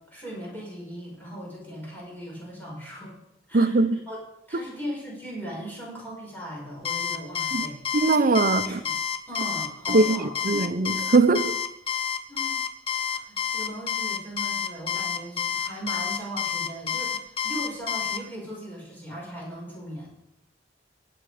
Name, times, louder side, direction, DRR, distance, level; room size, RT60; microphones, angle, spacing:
voice 1, 0.1-3.2 3.5-4.2 4.5-7.8 8.4-8.9 9.3-10.4 12.3-12.7 13.1-20.1, equal, 10° left, 5.4 m, -38 dB
voice 2, 3.5-4.0 4.5-4.6 7.5-7.7 7.9-8.8 9.9-11.6, right 3 dB, 50° right, 0.7 m, -21 dB
Alarm, 6.8-18.2, left 8 dB, 35° left, 0.8 m, -29 dB
16.5 x 8.7 x 5.0 m
head